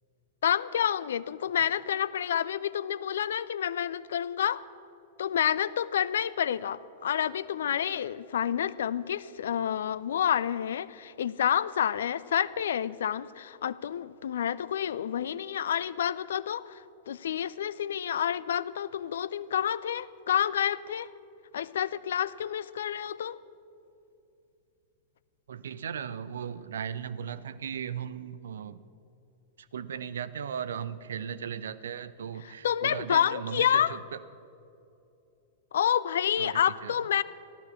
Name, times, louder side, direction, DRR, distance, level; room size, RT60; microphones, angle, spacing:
voice 1, 0.4-4.6 5.2-21.1 21.5-23.4 32.4-34.0 35.7-37.2, left 9 dB, 65° left, 18 dB, 0.4 m, -29 dB
voice 2, 25.5-28.8 29.7-34.2 36.4-36.9, right 8 dB, 65° right, 14 dB, 0.6 m, -37 dB
15.5 x 12.0 x 6.3 m, 2.7 s
figure-of-eight pair, 100°, 0 cm